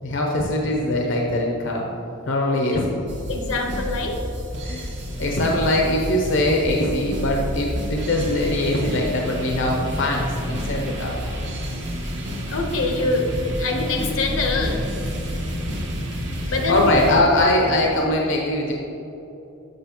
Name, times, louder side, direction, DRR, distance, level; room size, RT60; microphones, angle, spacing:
voice 1, 0.0-1.9 2.3-3.3 4.6-4.9 5.2-11.2 16.4-18.7, left 1 dB, 60° left, 0 dB, 0.7 m, -22 dB
sound 1, 3.1-17.2, equal, 60° right, 1.1 m, -29 dB
voice 2, 3.3-4.2 12.5-14.9 16.5-17.0 17.6-18.0, left 3 dB, 85° left, 2 dB, 0.9 m, -25 dB
7.8 x 6.1 x 2.9 m, 3.0 s
head